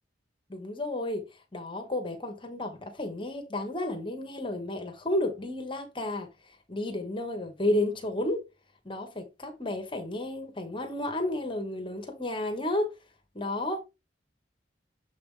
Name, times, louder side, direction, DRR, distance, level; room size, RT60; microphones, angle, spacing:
voice 1, 0.5-1.3 1.5-6.3 6.7-8.4 8.8-12.9 13.3-13.8, left 1 dB, 30° left, 1.2 m, -32 dB
7.2 x 4.8 x 3.8 m
head